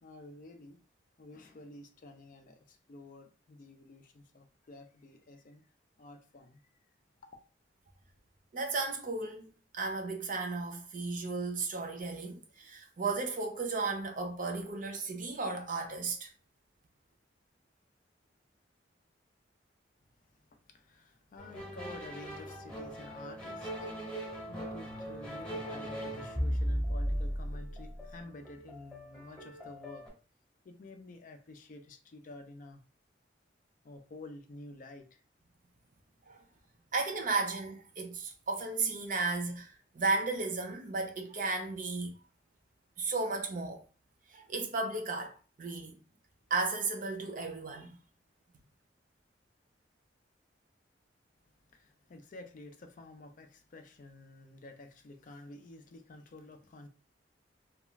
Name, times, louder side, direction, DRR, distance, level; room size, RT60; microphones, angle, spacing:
voice 1, 0.0-0.8 1.2-5.6 6.0-6.6 20.7-30.1 30.6-32.8 33.8-35.2 51.7-56.9, left 2 dB, 45° left, 0.4 m, -50 dB
voice 2, 8.5-16.3 36.3-36.4 36.9-42.1 43.0-43.8 44.3-46.0 46.5-48.0, right 3 dB, 45° right, 0.6 m, -34 dB
sound 1, 21.4-30.1, equal, 5° left, 0.8 m, -37 dB
2.4 x 2.3 x 3.0 m
head